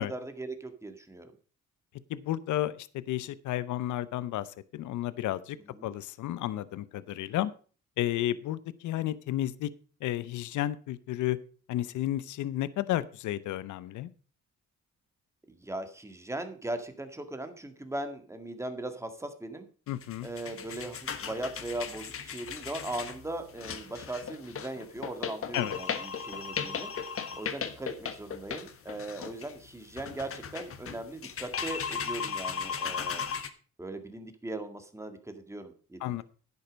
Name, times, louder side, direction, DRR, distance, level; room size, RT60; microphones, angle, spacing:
voice 1, 0.0-1.3 5.7-5.9 15.5-19.7 20.2-26.9 27.3-33.3 33.8-36.2, right 1 dB, 10° right, 7 dB, 1.9 m, -39 dB
voice 2, 2.1-5.6 5.8-7.5 8.0-9.7 10.0-11.4 11.7-14.1 19.9-20.3 25.5-25.7 36.0-36.2, left 13 dB, 75° left, 17 dB, 0.7 m, -32 dB
sound 1, 19.9-33.5, left 6 dB, 50° left, 1.3 m, -37 dB
10.5 x 8.4 x 5.2 m, 0.39 s
cardioid pair, 90°, 30 cm